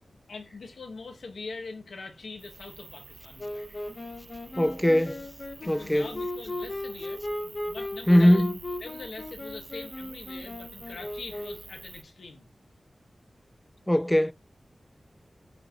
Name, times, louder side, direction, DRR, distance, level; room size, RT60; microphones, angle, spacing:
voice 1, 0.3-3.6 5.6-8.4 8.8-12.5, left 3 dB, 90° left, 1.6 m, -43 dB
sound 1, 2.4-12.0, right 4 dB, 65° right, 0.9 m, -48 dB
Wind instrument woodwind instrument, 3.4-11.8, left 1 dB, 55° left, 2.2 m, -37 dB
voice 2, 4.6-5.2 5.7-6.2 8.1-8.5 13.9-14.3, equal, 5° left, 0.3 m, -21 dB
7.8 x 4.9 x 4.0 m
wide cardioid pair, 100°, 0 cm